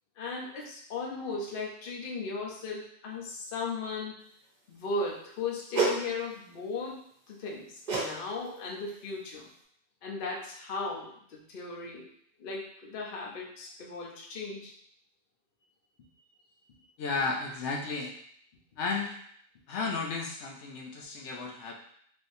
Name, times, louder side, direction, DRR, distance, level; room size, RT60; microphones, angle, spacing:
voice 1, 0.2-4.3 4.7-7.0 7.3-9.5 10.0-12.1 12.4-14.7, left 3 dB, 55° left, -2 dB, 0.8 m, -37 dB
sound 1, 5.7-6.0 7.9-8.1 8.4-8.7 9.3-9.4, right 3 dB, 45° right, 0.7 m, -28 dB
voice 2, 17.0-18.1 18.8-19.1 19.7-21.7, left 4 dB, 85° left, 0 dB, 0.9 m, -33 dB
3.4 x 2.7 x 2.6 m, 0.66 s
omnidirectional pair, 1.2 m